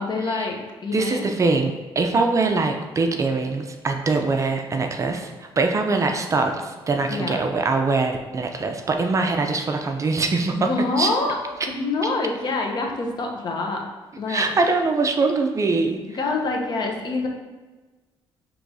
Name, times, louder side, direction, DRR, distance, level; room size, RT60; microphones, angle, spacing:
voice 1, 0.0-1.3 7.1-7.5 10.5-11.4 11.7-13.8 14.2-14.5 16.1-17.3, left 3 dB, 45° left, 2 dB, 0.8 m, -26 dB
voice 2, 0.9-10.7 11.0-11.1 14.3-16.2, right 3 dB, 30° right, 4 dB, 0.4 m, -23 dB
6.1 x 3.0 x 2.6 m, 1.2 s
cardioid pair, 95°, 10 cm